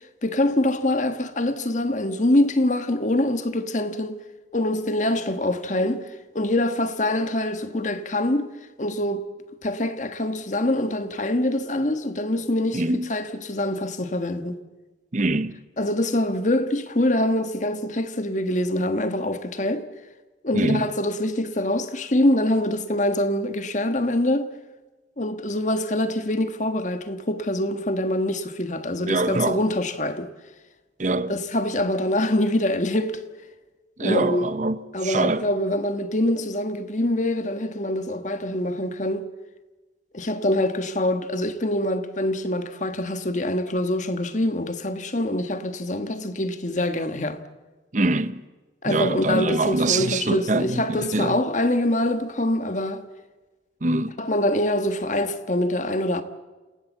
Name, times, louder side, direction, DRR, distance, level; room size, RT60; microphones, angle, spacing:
voice 1, 0.2-4.2 4.5-8.5 8.8-9.3 9.6-14.6 15.8-19.9 20.4-24.5 25.2-30.3 31.3-33.2 34.0-34.4 34.9-39.3 40.1-47.4 48.8-53.0 54.2-56.2, left 1 dB, 40° left, 1.5 m, -24 dB
voice 2, 12.7-13.1 15.1-15.6 20.5-20.9 29.1-29.6 31.0-31.4 34.0-35.5 47.9-48.4 48.8-51.4 53.8-54.2, right 2 dB, 40° right, 0.7 m, -24 dB
28.0 x 17.0 x 7.3 m
head